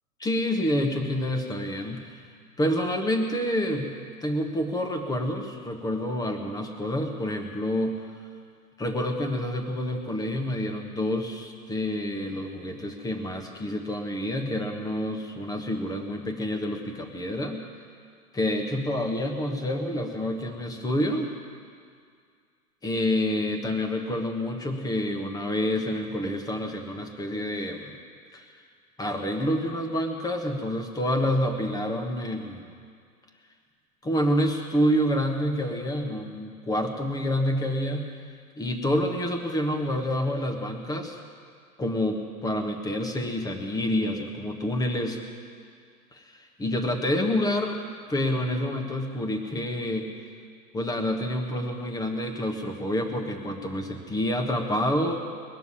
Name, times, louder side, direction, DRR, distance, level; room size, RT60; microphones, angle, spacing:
voice 1, 0.2-2.2 2.6-8.0 8.8-17.6 18.3-21.3 22.8-27.9 28.3-28.5 29.0-32.7 34.0-38.2 38.6-41.2 41.8-45.2 46.1-47.8 48.1-50.1 50.7-55.2, left 1 dB, 10° left, 4 dB, 1.4 m, -28 dB
20.5 x 6.9 x 9.8 m, 2.1 s
hypercardioid pair, 120°, 46 cm